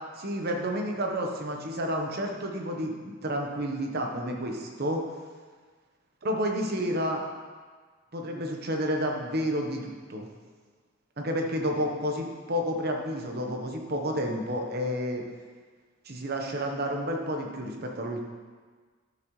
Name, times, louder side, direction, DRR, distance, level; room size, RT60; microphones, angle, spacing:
voice 1, 0.2-5.0 6.2-7.2 8.1-10.3 11.2-15.2 16.0-18.2, equal, 45° right, 2 dB, 1.0 m, -30 dB
11.5 x 6.4 x 3.2 m, 1.5 s
head